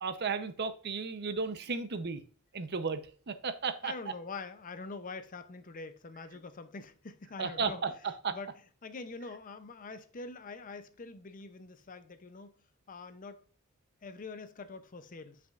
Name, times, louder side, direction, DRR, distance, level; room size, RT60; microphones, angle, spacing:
voice 1, 0.0-2.2 2.5-3.0 3.3-3.9 7.4-8.4, right 5 dB, 50° right, 0.7 m, -34 dB
voice 2, 3.8-7.9 8.3-8.5 8.8-12.5 12.9-13.4 14.0-15.4, left 3 dB, 40° left, 0.6 m, -44 dB
7.8 x 6.0 x 2.4 m
head